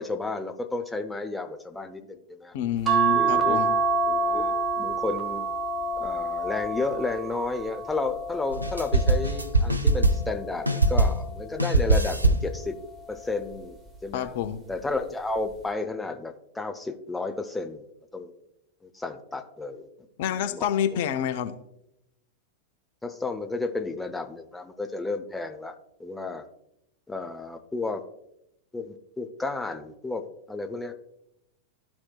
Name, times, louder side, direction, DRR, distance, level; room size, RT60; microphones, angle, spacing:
voice 1, 0.0-2.5 3.1-3.6 4.1-5.5 6.0-12.8 13.1-13.8 14.0-14.3 14.7-17.8 18.1-18.3 18.8-19.9 20.3-20.7 23.0-25.7 26.0-26.5 27.1-28.0 28.7-30.9, left 3 dB, 10° left, 6 dB, 0.6 m, -32 dB
voice 2, 2.5-3.7 14.1-14.6 20.2-21.5, left 9 dB, 50° left, 8 dB, 0.5 m, -28 dB
sound 1, 2.9-9.5 10.1-11.5 12.8-13.2 13.5-13.6, right 4 dB, 15° right, 1.0 m, -28 dB
sound 2, 8.5-10.4 10.7-11.3 11.6-12.5, right 2 dB, 85° right, 0.4 m, -22 dB
13.0 x 4.3 x 2.3 m, 0.81 s
figure-of-eight pair, 90°, 0 cm